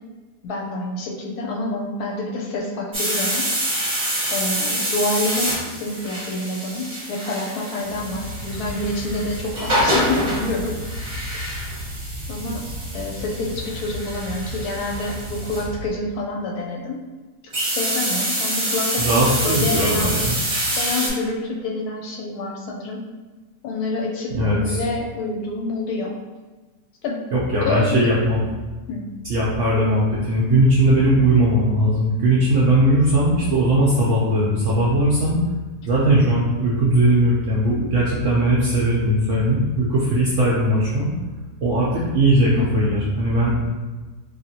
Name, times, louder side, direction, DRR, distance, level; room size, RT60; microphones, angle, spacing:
voice 1, 0.4-3.5 4.3-10.7 11.3-11.6 12.3-12.6 12.9-17.0 17.6-19.0 19.4-20.1 20.7-23.0 23.6-26.1 27.0-27.2 27.6-28.1 28.9-29.0, left 2 dB, 75° left, -1 dB, 1.0 m, -27 dB
sound 1, 2.9-15.6 17.5-21.1, right 1 dB, 30° right, 0.7 m, -26 dB
sound 2, 7.8-15.9, equal, 55° left, 0.6 m, -34 dB
voice 2, 19.0-20.4 24.3-24.8 27.3-28.4 29.3-35.4 35.9-41.1 41.6-43.5, right 1 dB, 70° right, -7 dB, 0.7 m, -19 dB
3.1 x 2.5 x 2.7 m, 1.3 s
omnidirectional pair, 1.8 m